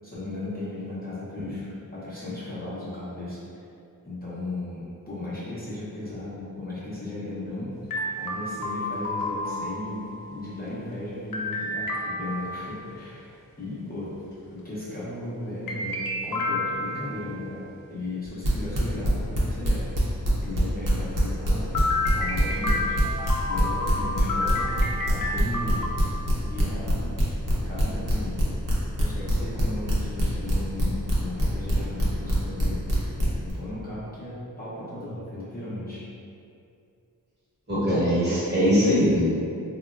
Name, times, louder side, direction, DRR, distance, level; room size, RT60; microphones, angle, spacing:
voice 1, 0.0-3.6 4.0-7.7 8.2-13.3 13.6-14.1 14.5-19.9 20.4-21.9 22.1-23.0 23.4-24.7 25.0-25.8 26.4-27.2 27.6-28.4 29.0-32.8 33.2-36.0, left 2 dB, 25° left, -10 dB, 0.7 m, -36 dB
sound 1, 7.9-10.4 11.3-12.9 15.7-17.4 21.7-25.9, left 2 dB, 70° left, 0.5 m, -30 dB
sound 2, 18.4-20.6 20.8-33.5, equal, 65° right, 0.7 m, -24 dB
voice 2, 37.7-39.4, equal, 30° right, -11 dB, 1.0 m, -21 dB
3.3 x 2.1 x 2.3 m, 2.5 s
wide cardioid pair, 100°, 35 cm